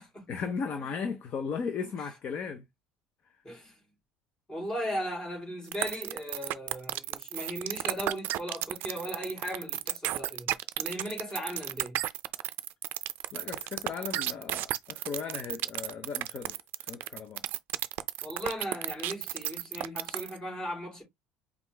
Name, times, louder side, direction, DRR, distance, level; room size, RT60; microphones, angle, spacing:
voice 1, 0.3-2.6 13.3-16.6 16.9-17.4, left 6 dB, 35° left, 0.7 m, -36 dB
voice 2, 3.4-3.8 4.5-10.5 10.8-12.0 18.2-21.0, equal, 15° left, 2.8 m, -37 dB
sound 1, 5.7-20.4, right 15 dB, 55° right, 0.4 m, -33 dB
5.1 x 2.5 x 3.3 m
cardioid pair, 155°, 4 cm